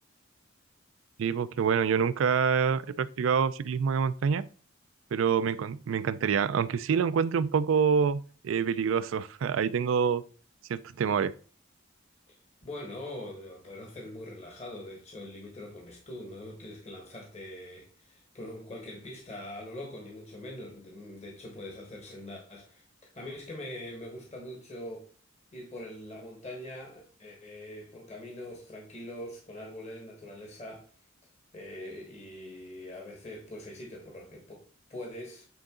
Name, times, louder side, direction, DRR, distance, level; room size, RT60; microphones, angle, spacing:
voice 1, 1.2-4.5 5.1-10.2 10.7-11.3, right 6 dB, 75° right, 0.4 m, -26 dB
voice 2, 12.6-22.8 23.1-25.1 25.5-30.9 31.5-34.6 34.9-35.5, left 1 dB, 35° left, 1.4 m, -43 dB
8.9 x 3.8 x 3.7 m
head